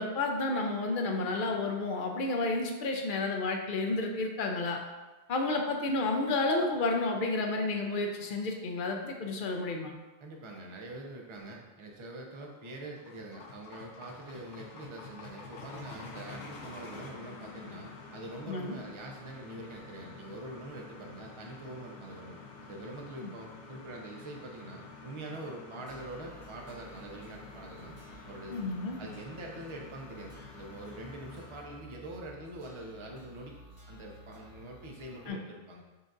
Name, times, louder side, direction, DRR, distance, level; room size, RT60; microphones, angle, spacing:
voice 1, 0.0-4.8 5.3-9.9 18.5-18.8 23.2-23.3 28.5-29.0 35.3-35.4, left 2 dB, 60° left, 2 dB, 0.6 m, -31 dB
voice 2, 10.2-28.0 28.2-28.6 29.0-33.5 33.9-35.8, right 2 dB, 40° right, 0 dB, 0.5 m, -44 dB
sound 1, 12.4-31.8, left 4 dB, 90° left, 1.0 m, -49 dB
sound 2, 25.9-35.3, equal, 65° right, 1.6 m, -54 dB
6.6 x 2.4 x 2.5 m, 1.2 s
omnidirectional pair, 1.2 m